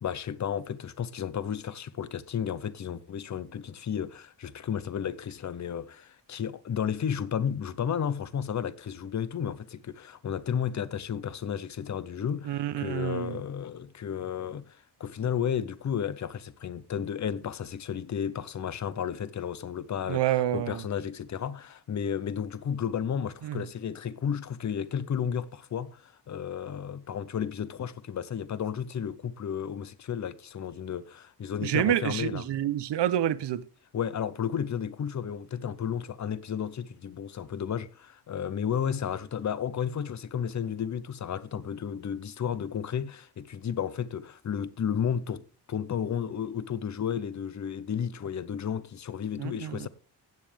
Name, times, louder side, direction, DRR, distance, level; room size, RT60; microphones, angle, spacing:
voice 1, 0.0-32.4 33.9-45.4 45.7-49.9, left 8 dB, 45° left, 0.7 m, -33 dB
voice 2, 12.4-13.4 20.1-20.8 23.4-23.6 31.6-33.6 49.4-49.9, right 12 dB, 90° right, 0.8 m, -28 dB
16.0 x 9.4 x 3.4 m
wide cardioid pair, 180°, 41 cm